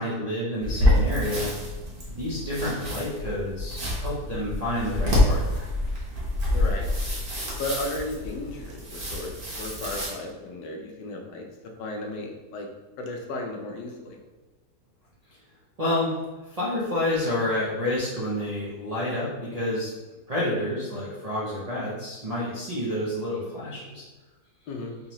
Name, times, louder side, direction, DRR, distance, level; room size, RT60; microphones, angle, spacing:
voice 1, 0.0-1.5 2.1-5.6 15.8-16.2 16.4-19.9 20.3-24.0, left 1 dB, 65° right, -7 dB, 0.3 m, -29 dB
sound 1, 0.6-10.1, left 1 dB, 40° right, 1.0 m, -27 dB
voice 2, 6.5-6.9 7.6-11.5 11.8-12.7 13.0-14.2 24.7-24.9, left 2 dB, 85° left, 2 dB, 1.3 m, -34 dB
3.7 x 3.2 x 2.9 m, 1.2 s
omnidirectional pair, 1.9 m